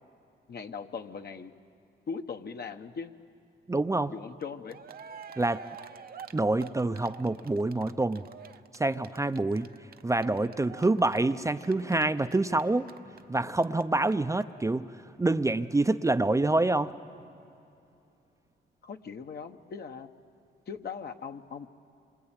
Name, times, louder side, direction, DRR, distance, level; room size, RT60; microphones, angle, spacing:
voice 1, 0.5-1.5 2.1-3.1 4.1-4.8 18.8-20.1 20.7-21.7, left 5 dB, 55° left, 6 dB, 1.2 m, -39 dB
voice 2, 3.7-4.1 5.4-5.6 6.3-8.2 8.7-9.7 10.0-12.9 13.3-14.9 15.2-16.9, right 2 dB, 15° right, 9 dB, 0.6 m, -26 dB
Cheering, 4.4-4.5 4.7-13.8 14.1-14.2 14.4-14.5, right 7 dB, 50° right, 0.8 m, -48 dB
27.0 x 24.5 x 9.0 m, 2.7 s
cardioid pair, 85°, 20 cm